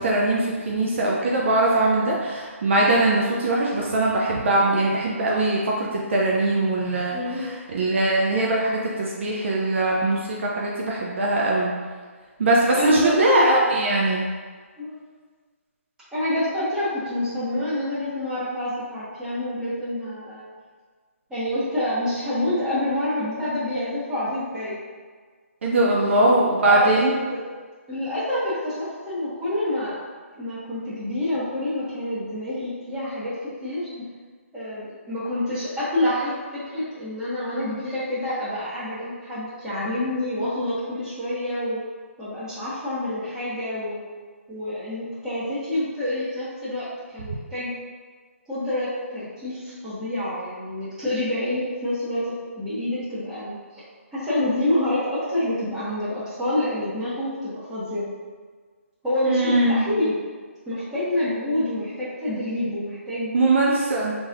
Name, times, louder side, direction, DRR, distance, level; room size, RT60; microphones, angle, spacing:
voice 1, 0.0-11.7 12.4-14.2 25.6-27.1 59.2-59.8 63.3-64.1, right 2 dB, 55° right, -3 dB, 0.6 m, -21 dB
voice 2, 7.1-7.5 12.7-13.5 14.8-15.0 16.1-20.5 21.3-24.7 26.6-27.4 27.9-30.0 30.4-33.3 33.6-33.9 34.5-41.8 42.2-44.0 44.5-46.9 47.1-47.7 48.5-53.8 54.1-58.0 59.0-60.1 60.6-63.3, left 1 dB, 5° right, -13 dB, 1.3 m, -27 dB
4.1 x 3.1 x 2.5 m, 1.5 s
hypercardioid pair, 155°, 8 cm